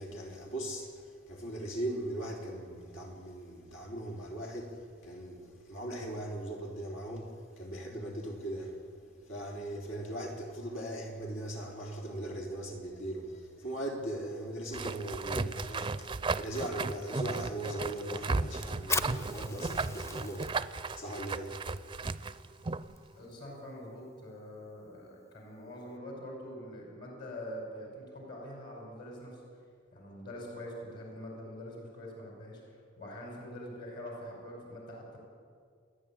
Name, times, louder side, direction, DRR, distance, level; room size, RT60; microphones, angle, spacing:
voice 1, 0.0-8.9 9.2-20.5 21.0-21.9, right 1 dB, 85° left, 3.7 m, -39 dB
sound 1, 14.7-22.9, right 3 dB, 25° right, 0.5 m, -35 dB
Fire, 18.8-26.0, left 2 dB, 15° left, 0.7 m, -42 dB
voice 2, 23.2-29.4 29.9-35.2, equal, 55° left, 5.6 m, -44 dB
29.0 x 10.0 x 8.9 m
head